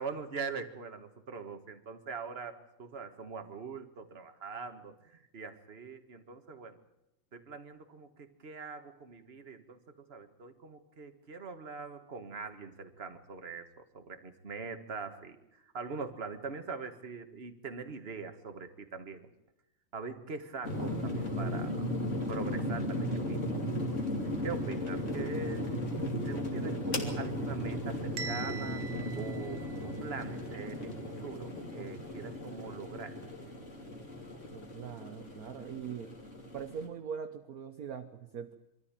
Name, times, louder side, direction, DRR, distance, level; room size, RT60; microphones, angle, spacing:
voice 1, 0.0-6.8 7.3-19.3 19.9-21.8 22.3-23.6 24.4-25.7 26.2-28.9 29.1-33.2, right 4 dB, 30° right, 7 dB, 1.7 m, -42 dB
sound 1, 20.6-36.9, left 1 dB, 30° left, 3.2 m, -36 dB
Bell, 28.2-30.2, right 5 dB, 80° right, 1.9 m, -43 dB
voice 2, 34.5-36.1 36.5-38.5, right 7 dB, 50° right, 8 dB, 1.3 m, -41 dB
24.0 x 14.0 x 9.1 m, 0.87 s
omnidirectional pair, 2.4 m